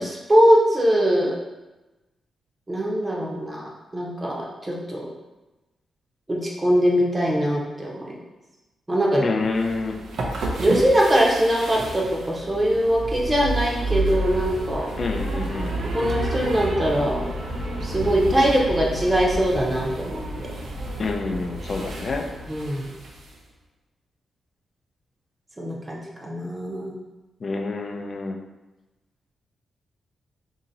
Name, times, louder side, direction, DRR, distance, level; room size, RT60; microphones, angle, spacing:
voice 1, 0.0-1.4 2.7-5.1 6.3-8.1 8.9-9.3 10.6-14.9 15.9-17.3 17.8-20.5 22.5-22.9 25.6-27.0, equal, 20° right, -3 dB, 0.7 m, -22 dB
voice 2, 9.2-10.0 15.0-15.8 21.0-22.3 27.4-28.4, left 3 dB, 45° left, 4 dB, 0.4 m, -27 dB
sound 1, 9.5-23.3, right 1 dB, 75° right, 0.6 m, -30 dB
2.8 x 2.8 x 3.9 m, 1.1 s
cardioid pair, 95°, 0 cm